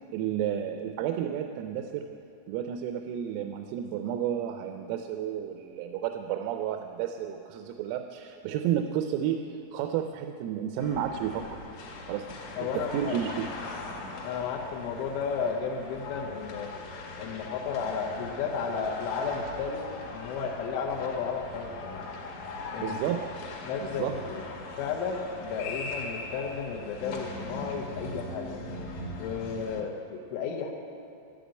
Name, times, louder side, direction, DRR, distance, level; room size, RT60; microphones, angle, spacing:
voice 1, 0.1-2.1 2.5-9.4 9.7-11.6 12.1-13.5 22.8-23.3 23.8-24.1, right 9 dB, 90° right, 6 dB, 3.4 m, -31 dB
sound 1, 10.8-29.8, left 2 dB, 55° left, 2.6 m, -40 dB
voice 2, 12.6-13.2 14.2-16.7 17.2-22.1 22.7-23.2 23.6-24.4 24.8-28.6 29.2-30.7, left 5 dB, 75° left, -1 dB, 3.3 m, -33 dB
12.5 x 12.5 x 9.1 m, 2.7 s
omnidirectional pair, 6.0 m